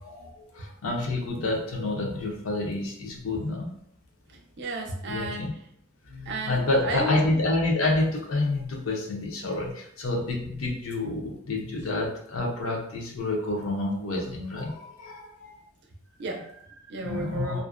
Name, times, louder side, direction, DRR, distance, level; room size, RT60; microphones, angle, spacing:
voice 1, 0.0-3.7 5.1-5.5 6.1-15.6 17.0-17.6, left 2 dB, 70° left, -1 dB, 0.6 m, -28 dB
voice 2, 4.6-5.5 6.3-7.4 16.2-17.6, right 1 dB, 60° right, 2 dB, 0.5 m, -33 dB
2.5 x 2.1 x 2.4 m, 0.69 s
head